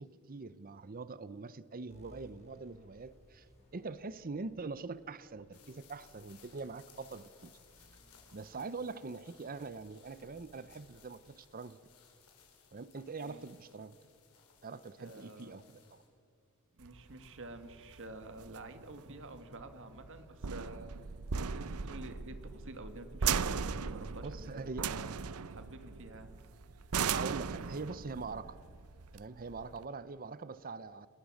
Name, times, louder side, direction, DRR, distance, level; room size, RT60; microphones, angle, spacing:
voice 1, 0.0-3.5 3.7-7.5 8.3-11.8 12.7-14.0 14.6-16.0 24.2-24.9 27.1-28.6 29.1-31.1, right 4 dB, 40° right, 16 dB, 0.7 m, -43 dB
sound 1, 1.9-12.7, equal, 30° left, 5.5 m, -64 dB
sound 2, 5.5-16.1, left 6 dB, 85° left, 5.0 m, -63 dB
voice 2, 15.0-15.6 16.7-20.9 21.4-25.1 25.5-26.3, right 2 dB, 60° right, 8 dB, 2.2 m, -49 dB
sound 3, 16.8-29.8, right 6 dB, 80° right, 0.7 m, -38 dB
29.0 x 20.0 x 6.5 m, 2.3 s
head